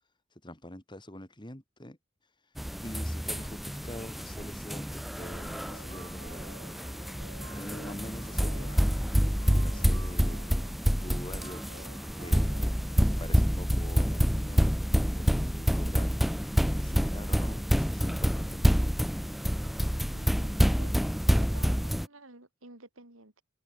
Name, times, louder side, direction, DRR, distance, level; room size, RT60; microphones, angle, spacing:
voice 1, 0.4-2.0 2.8-6.5 7.6-10.5 11.0-12.6 13.0-14.7 15.0-16.2 16.8-18.8, left 1 dB, 25° left, 3.7 m, -45 dB
sound 1, 2.6-22.1, equal, ahead, 0.5 m, -28 dB
sound 2, 5.2-13.2, right 3 dB, 70° right, 3.5 m, -52 dB
voice 2, 20.1-20.9 21.3-23.4, right 2 dB, 85° right, 4.9 m, -52 dB
open air
head